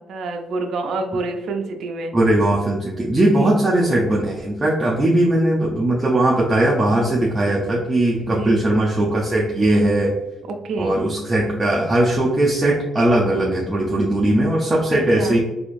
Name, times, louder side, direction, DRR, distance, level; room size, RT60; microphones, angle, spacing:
voice 1, 0.0-2.1 3.3-3.5 8.3-8.6 10.4-11.0 14.9-15.4, right 3 dB, 70° right, 4 dB, 0.4 m, -28 dB
voice 2, 2.1-10.1 10.8-15.4, right 1 dB, 20° right, -3 dB, 0.6 m, -19 dB
3.5 x 2.6 x 2.5 m, 1.0 s
cardioid pair, 90°, 0 cm